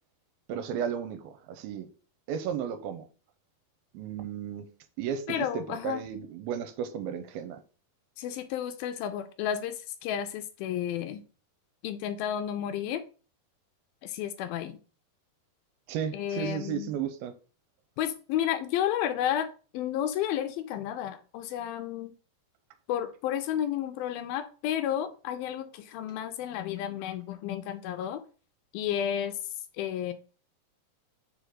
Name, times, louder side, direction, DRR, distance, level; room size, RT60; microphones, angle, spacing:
voice 1, 0.5-1.9 2.3-3.1 3.9-4.7 5.0-7.6 15.9-17.3, right 8 dB, 80° right, 2.5 m, -34 dB
voice 2, 5.3-6.0 8.2-11.2 11.8-13.0 14.0-14.8 16.1-16.9 18.0-19.5 19.7-22.1 22.9-28.2 28.7-29.4 29.8-30.1, left 10 dB, 80° left, 2.3 m, -32 dB
5.1 x 5.1 x 6.3 m
omnidirectional pair, 4.5 m